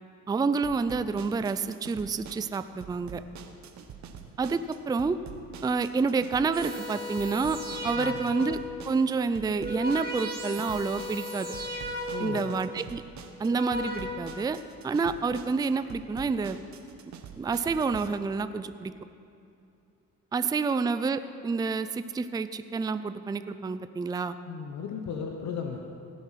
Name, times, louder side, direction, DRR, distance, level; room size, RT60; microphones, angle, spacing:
voice 1, 0.3-3.2 4.4-5.2 5.6-7.6 7.8-8.6 8.9-11.5 12.2-13.0 13.4-14.6 14.8-16.6 17.4-18.9 20.3-24.4, right 4 dB, 15° right, 12 dB, 0.4 m, -28 dB
sound 1, 0.6-18.1, right 7 dB, 65° right, 1.0 m, -46 dB
sound 2, 6.5-8.6 9.3-12.5 13.2-14.0, left 1 dB, 30° right, 2.2 m, -36 dB
voice 2, 7.9-8.4 12.1-12.5 24.4-25.8, left 6 dB, 65° left, 3 dB, 1.0 m, -36 dB
16.5 x 7.3 x 5.8 m, 2.6 s
cardioid pair, 90°, 30 cm